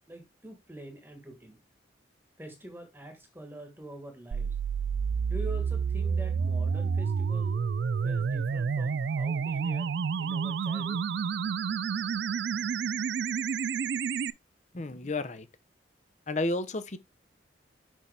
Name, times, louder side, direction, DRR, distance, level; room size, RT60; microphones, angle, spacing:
voice 1, 0.1-1.6 2.4-4.6 5.3-7.6 8.0-11.1, right 1 dB, 10° right, 1.3 m, -45 dB
sound 1, 4.3-14.3, right 6 dB, 65° right, 0.3 m, -29 dB
voice 2, 14.7-15.5 16.3-17.0, left 2 dB, 40° left, 0.7 m, -31 dB
6.1 x 5.8 x 3.3 m
head